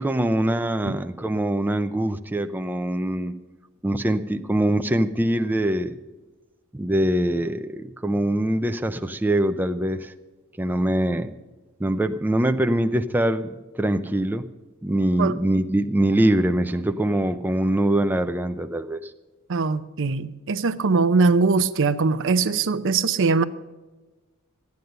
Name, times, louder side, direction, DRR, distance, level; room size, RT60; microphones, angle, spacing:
voice 1, 0.0-3.3 3.8-6.0 6.7-10.1 10.6-11.3 11.8-14.5 14.8-19.1, right 1 dB, 10° right, 7 dB, 0.4 m, -23 dB
voice 2, 19.5-23.4, right 4 dB, 60° right, 13 dB, 0.6 m, -21 dB
13.5 x 9.4 x 6.7 m, 1.2 s
head